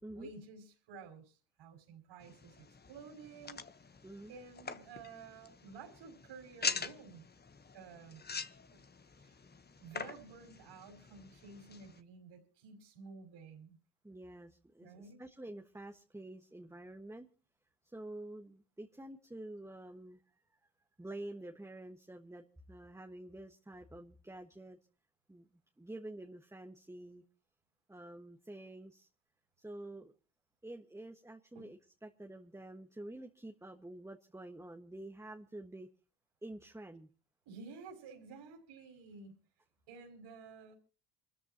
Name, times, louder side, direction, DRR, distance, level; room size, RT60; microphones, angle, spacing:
voice 1, 0.1-3.6 4.3-7.3 7.7-8.2 8.7-8.8 9.2-9.4 9.8-13.8 14.8-15.2 31.5-31.7 37.5-39.4 39.9-40.7, right 4 dB, 60° right, 0 dB, 5.5 m, -52 dB
sound 1, 2.2-12.0, left 5 dB, 20° left, 1.1 m, -44 dB
voice 2, 4.0-4.3 14.0-17.3 17.8-20.2 21.0-24.8 25.3-25.5 25.8-27.2 27.9-29.1 29.6-30.1 30.6-35.9 36.4-37.1, right 1 dB, 5° right, 4 dB, 1.4 m, -48 dB
27.5 x 13.5 x 2.9 m, 0.36 s
hypercardioid pair, 65°, 49 cm